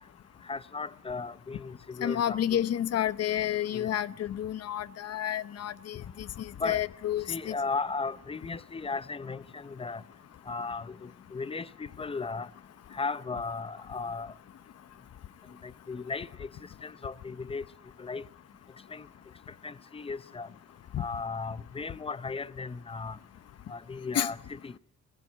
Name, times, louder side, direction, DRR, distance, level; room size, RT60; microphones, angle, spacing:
voice 1, 0.4-2.6 3.7-3.9 6.6-6.8 7.3-10.0 10.5-12.5 12.9-14.3 15.6-17.6 18.0-18.2 18.9-19.1 19.6-20.5 21.0-23.2 23.7-24.7, left 4 dB, 20° left, 0.7 m, -36 dB
voice 2, 2.0-7.5 20.9-21.0 24.1-24.3, left 11 dB, 55° left, 0.8 m, -30 dB
21.0 x 15.0 x 9.3 m
cardioid pair, 90°, 30 cm